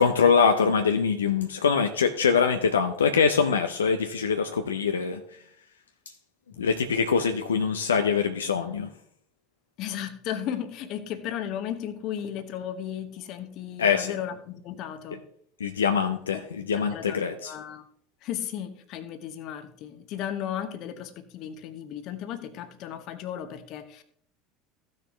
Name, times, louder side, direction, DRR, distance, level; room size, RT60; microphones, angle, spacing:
voice 1, 0.0-5.2 6.6-8.9 13.8-14.1 15.6-17.5, left 6 dB, 75° left, 6 dB, 0.5 m, -23 dB
voice 2, 9.8-15.2 16.3-16.4 16.7-17.8 18.2-24.0, left 10 dB, 50° left, 10 dB, 1.0 m, -35 dB
15.0 x 6.4 x 3.2 m, 0.64 s
figure-of-eight pair, 75°, 0 cm